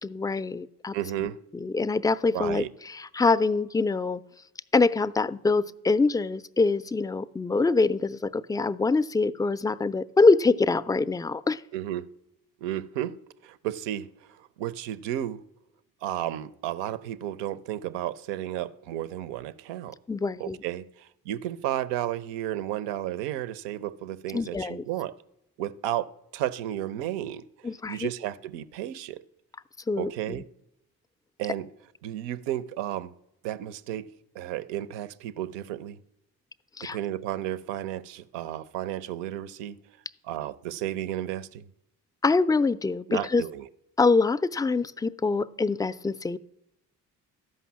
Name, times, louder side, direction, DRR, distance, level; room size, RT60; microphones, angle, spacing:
voice 1, 0.0-1.3 1.5-4.2 4.7-11.6 20.1-20.6 24.3-24.8 27.6-28.1 29.9-30.4 36.8-37.0 42.2-43.4 44.0-46.4, left 3 dB, 10° left, 0.3 m, -25 dB
voice 2, 0.9-1.4 2.3-2.7 11.7-12.1 12.6-13.2 13.4-14.1 14.4-15.4 16.0-20.0 20.4-25.2 25.6-27.4 27.9-29.2 30.0-30.5 31.4-31.7 32.0-33.1 33.4-36.0 36.8-39.8 40.2-41.6 43.1-43.7, right 12 dB, 75° right, 0.6 m, -33 dB
13.0 x 5.5 x 7.2 m
hypercardioid pair, 45°, 43 cm